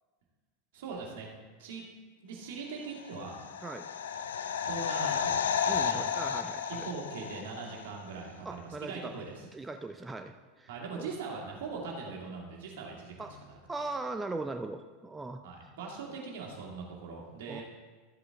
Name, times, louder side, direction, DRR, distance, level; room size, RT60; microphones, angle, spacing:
voice 1, 0.7-1.3 1.6-1.8 2.2-3.4 4.6-6.0 6.6-9.4 10.7-13.9 15.4-17.6, right 4 dB, 65° right, -1 dB, 2.1 m, -41 dB
sound 1, 3.0-7.9 8.2-8.3, left 7 dB, 75° left, 0.5 m, -32 dB
voice 2, 5.7-6.9 8.4-9.2 9.5-11.1 13.2-13.3 13.7-15.4 17.5-17.6, right 3 dB, 15° right, 7 dB, 0.5 m, -39 dB
13.0 x 7.9 x 3.6 m, 1.4 s
figure-of-eight pair, 85°, 0 cm